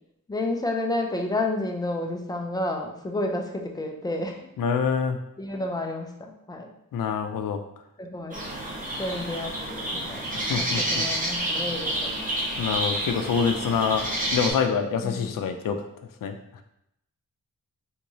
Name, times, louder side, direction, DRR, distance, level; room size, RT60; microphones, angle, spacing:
voice 1, 0.3-4.5 5.4-6.7 8.0-8.5 9.0-12.1 15.0-15.4, left 2 dB, 10° left, 2 dB, 0.4 m, -31 dB
voice 2, 4.6-5.2 6.9-7.6 10.4-11.0 12.6-14.0 14.3-15.9 16.2-16.3, left 6 dB, 85° left, 7 dB, 0.5 m, -26 dB
sound 1, 8.3-14.5, right 1 dB, 25° right, 0.8 m, -29 dB
3.5 x 3.0 x 2.6 m, 0.80 s
wide cardioid pair, 125°, 32 cm